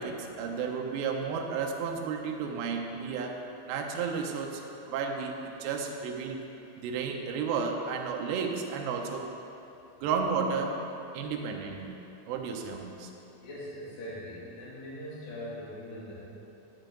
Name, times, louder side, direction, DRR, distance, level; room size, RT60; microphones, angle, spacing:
voice 1, 0.0-3.4 3.7-4.6 4.9-6.4 6.8-9.3 10.0-10.7 11.1-11.9 12.3-13.1, right 5 dB, 80° right, 2 dB, 2.9 m, -32 dB
voice 2, 13.4-16.1, equal, 55° left, -10 dB, 4.0 m, -41 dB
11.0 x 9.1 x 3.8 m, 3.0 s
omnidirectional pair, 5.2 m